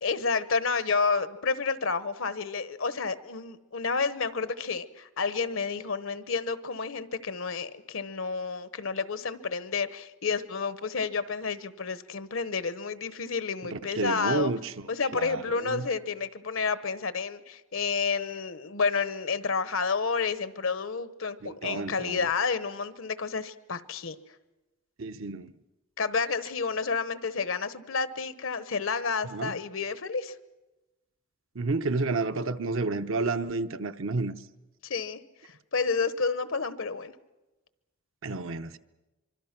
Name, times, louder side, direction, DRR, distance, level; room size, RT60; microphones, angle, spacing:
voice 1, 0.0-14.5 14.9-24.1 26.0-30.3 34.8-35.2 35.7-37.1, left 5 dB, 75° left, 1.0 m, -30 dB
voice 2, 13.6-14.9 15.1-15.9 21.4-22.2 25.0-25.5 29.3-29.6 31.5-34.3 38.2-38.8, right 3 dB, 70° right, 0.9 m, -30 dB
25.0 x 24.5 x 6.0 m
head